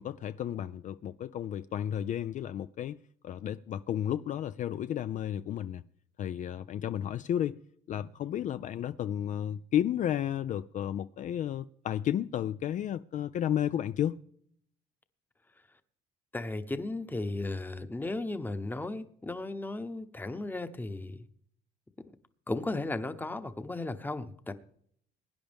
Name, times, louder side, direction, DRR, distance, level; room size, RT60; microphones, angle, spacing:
voice 1, 0.0-3.0 3.2-5.8 6.2-7.6 7.9-14.2, left 10 dB, 50° left, 0.4 m, -32 dB
voice 2, 16.3-21.3 22.5-24.5, left 2 dB, 10° left, 0.9 m, -35 dB
22.0 x 10.0 x 3.5 m
cardioid pair, 110°, 17 cm